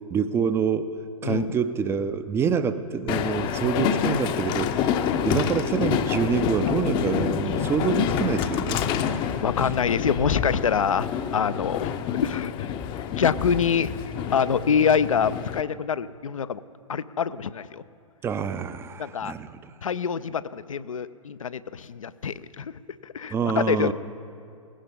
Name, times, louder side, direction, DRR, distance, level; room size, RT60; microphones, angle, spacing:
voice 1, 0.1-0.9 1.2-4.9 5.3-8.8 18.2-19.7 23.3-23.9, right 6 dB, 15° right, 12 dB, 0.5 m, -26 dB
Train, 3.1-15.6, left 8 dB, 25° left, 0.7 m, -27 dB
voice 2, 9.4-11.1 11.3-12.7 13.2-13.9 14.3-16.6 16.9-17.8 19.0-19.3 19.8-22.7 23.0-23.9, left 7 dB, 70° left, 15 dB, 0.5 m, -25 dB
18.5 x 16.5 x 3.7 m, 2.4 s
figure-of-eight pair, 110°, 18 cm